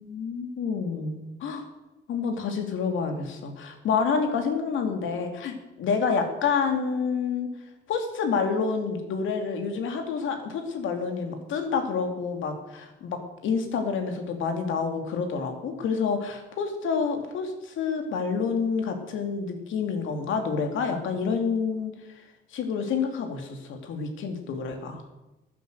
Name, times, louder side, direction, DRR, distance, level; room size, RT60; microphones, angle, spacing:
voice 1, 0.0-1.7 2.1-7.5 7.9-21.9 22.5-25.0, left 5 dB, 80° left, 5 dB, 2.5 m, -28 dB
15.0 x 9.2 x 6.7 m, 1.0 s
cardioid pair, 90°, 20 cm